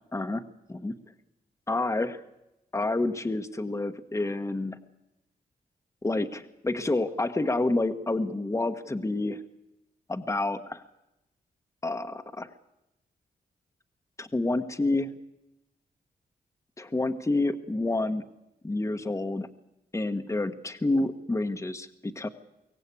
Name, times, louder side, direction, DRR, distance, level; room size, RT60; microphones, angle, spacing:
voice 1, 0.1-0.9 1.7-2.2 2.7-4.8 6.0-9.4 10.1-10.8 11.8-12.5 14.2-15.2 16.8-18.3 18.6-19.5 19.9-22.3, left 2 dB, 20° left, 5 dB, 1.2 m, -29 dB
23.5 x 17.0 x 8.5 m, 0.91 s
cardioid pair, 70°, 16 cm